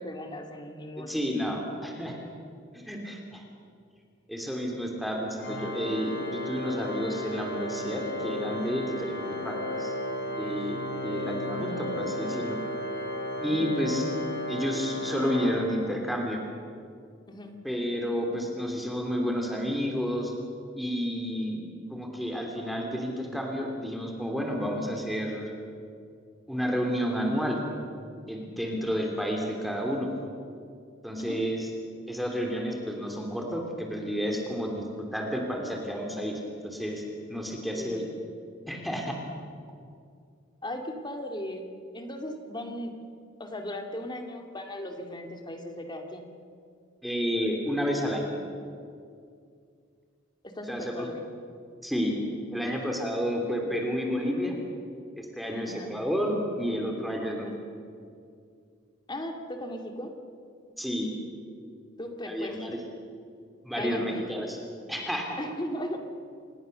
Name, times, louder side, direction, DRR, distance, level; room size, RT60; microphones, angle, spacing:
voice 1, 0.0-1.1 13.5-13.7 17.3-17.6 31.2-31.4 37.7-38.1 40.6-41.7 41.9-46.2 50.4-51.3 55.6-55.9 59.1-60.1 62.0-62.6 63.8-64.3 65.4-66.0, left 1 dB, 25° left, 4 dB, 2.3 m, -37 dB
voice 2, 1.0-2.2 2.7-3.4 4.3-9.2 9.4-9.9 10.4-12.6 13.4-14.1 14.5-16.4 17.6-20.3 20.7-25.5 26.5-27.6 28.3-30.1 31.0-31.7 32.1-37.0 37.3-38.0 38.7-39.1 47.0-48.3 50.7-51.1 51.8-52.2 52.5-54.5 55.2-57.5 60.8-61.1 62.3-62.8 63.6-64.6 64.9-65.4, equal, ahead, 1 dB, 3.2 m, -30 dB
Organ, 5.4-16.2, left 1 dB, 65° left, 4.0 m, -34 dB
27.5 x 19.5 x 6.8 m, 2.3 s
head